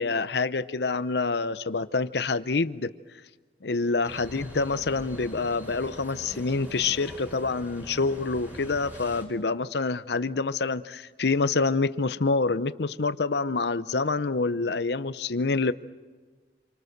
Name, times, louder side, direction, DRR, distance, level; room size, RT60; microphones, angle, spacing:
voice 1, 0.0-2.9 3.6-15.7, left 3 dB, 65° left, 13 dB, 0.7 m, -27 dB
sound 1, 4.0-9.3, equal, 10° right, 4.5 m, -43 dB
28.0 x 24.0 x 6.7 m, 1.4 s
head